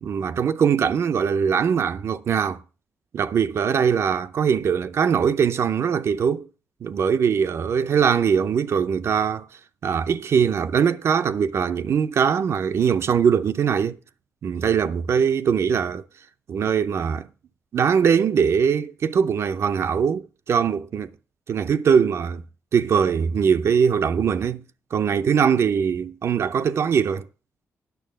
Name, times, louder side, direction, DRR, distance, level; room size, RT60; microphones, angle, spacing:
voice 1, 0.0-2.6 3.1-6.5 6.8-9.5 9.8-14.0 14.4-16.0 16.5-17.3 17.7-21.1 21.5-22.4 22.7-24.6 24.9-27.2, right 7 dB, 60° right, 0.5 m, -21 dB
9.2 x 6.3 x 6.5 m
cardioid pair, 85°, 5 cm